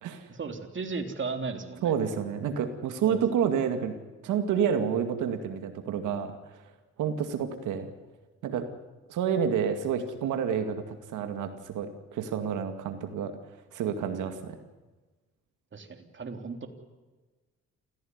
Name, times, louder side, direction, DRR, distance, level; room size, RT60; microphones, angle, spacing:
voice 1, 0.3-2.0 3.1-3.2 14.1-14.2 15.7-16.7, right 4 dB, 40° right, 6 dB, 3.5 m, -36 dB
voice 2, 1.8-6.4 7.0-7.9 8.4-8.7 9.1-13.4 13.7-14.6, right 7 dB, 80° right, 7 dB, 2.2 m, -29 dB
28.0 x 16.0 x 9.6 m, 1.3 s
cardioid pair, 90°, 30 cm